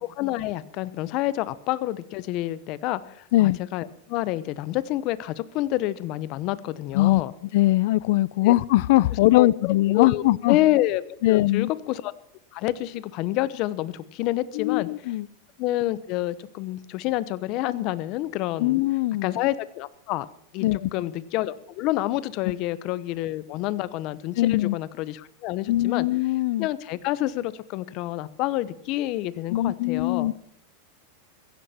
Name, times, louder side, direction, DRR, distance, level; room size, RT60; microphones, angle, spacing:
voice 1, 0.2-7.3 8.4-8.5 9.3-12.1 12.5-14.9 15.6-18.8 19.2-20.3 20.5-26.1 26.6-30.3, left 15 dB, 40° left, 0.9 m, -28 dB
voice 2, 7.5-10.6 11.2-11.7 14.5-15.3 18.6-19.3 20.6-20.9 24.4-24.7 25.7-26.7 29.5-30.3, left 17 dB, 55° left, 0.5 m, -21 dB
16.0 x 15.5 x 4.4 m
supercardioid pair, 160°, 0 cm